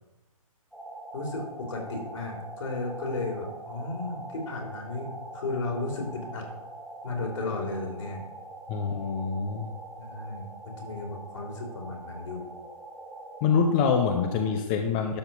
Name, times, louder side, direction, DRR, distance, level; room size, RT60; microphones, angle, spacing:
sound 1, 0.7-14.6, right 2 dB, ahead, 0.9 m, -43 dB
voice 1, 1.1-6.4 7.0-8.2 10.0-12.5, left 3 dB, 55° left, 0 dB, 3.1 m, -34 dB
voice 2, 8.7-9.7 13.4-15.2, left 6 dB, 15° left, 4 dB, 0.4 m, -25 dB
12.0 x 4.0 x 6.9 m, 1.1 s
hypercardioid pair, 160°, 18 cm